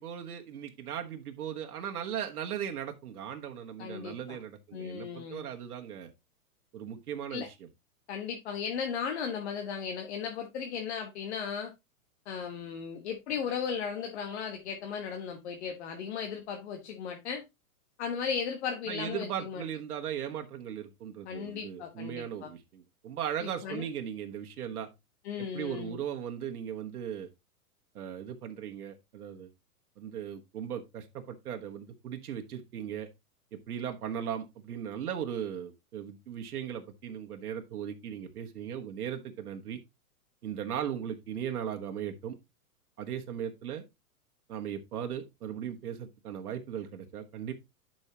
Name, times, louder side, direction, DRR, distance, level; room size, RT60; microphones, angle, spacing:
voice 1, 0.0-6.1 6.7-7.7 18.9-24.9 25.4-27.3 27.9-29.5 30.0-33.1 33.5-39.8 40.4-42.3 43.0-43.8 44.5-47.5, right 9 dB, 85° right, 1.4 m, -38 dB
voice 2, 3.8-4.4 4.7-5.5 7.3-7.5 8.1-11.7 12.3-17.4 18.0-19.7 21.3-22.5 23.4-23.8 25.2-26.0, left 7 dB, 50° left, 1.3 m, -36 dB
10.5 x 5.5 x 2.9 m
hypercardioid pair, 165°, 44 cm